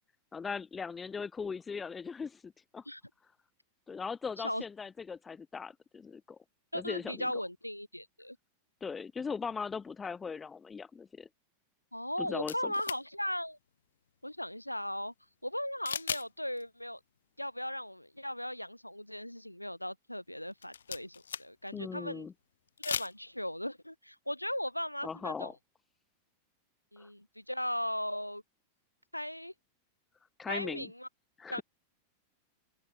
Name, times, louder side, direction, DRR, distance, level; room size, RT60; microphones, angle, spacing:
voice 1, 0.3-2.8 3.9-6.4 6.7-7.3 8.8-11.3 12.2-12.7 21.7-22.3 25.0-25.6 27.0-27.1 30.4-30.9 31.4-31.6, left 5 dB, 15° left, 0.5 m, -39 dB
voice 2, 6.7-8.4 11.9-13.6 14.2-15.1 15.4-17.0 17.4-22.3 22.8-25.5 26.9-28.4 29.1-29.5 30.5-31.1 31.5-31.6, left 1 dB, 90° left, 2.3 m, -37 dB
sound 1, 12.5-13.0 15.9-16.3 16.6-16.7 20.5-21.7 22.7-23.1, left 7 dB, 70° left, 0.4 m, -37 dB
open air
figure-of-eight pair, 90°, 0 cm